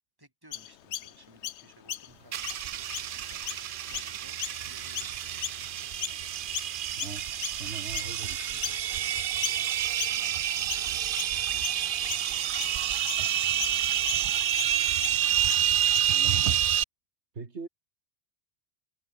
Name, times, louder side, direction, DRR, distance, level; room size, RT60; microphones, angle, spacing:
voice 1, 0.2-5.1 7.6-8.0 8.3-14.1, right 1 dB, 20° right, 4.9 m, -57 dB
Chirp tweet, 0.5-6.2 6.5-16.3, left 11 dB, 85° left, 1.0 m, -38 dB
sound 1, 2.3-16.8, right 11 dB, 60° right, 0.7 m, -28 dB
voice 2, 7.6-8.4 16.1-16.6 17.3-17.7, right 4 dB, 80° right, 2.4 m, -41 dB
omnidirectional pair, 1.1 m